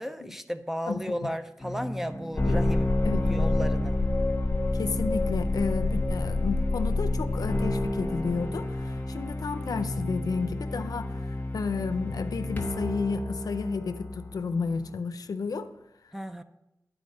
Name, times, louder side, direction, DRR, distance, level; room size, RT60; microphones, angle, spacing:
voice 1, 0.0-2.9 3.3-4.0 16.1-16.4, equal, 5° right, 9 dB, 0.4 m, -34 dB
voice 2, 0.9-1.3 2.4-2.6 3.0-3.5 4.7-15.7, left 4 dB, 80° left, 10 dB, 0.5 m, -32 dB
sound 1, 1.6-14.9, left 2 dB, 30° left, 1.0 m, -29 dB
10.0 x 4.5 x 5.3 m, 0.92 s
wide cardioid pair, 110°, 6 cm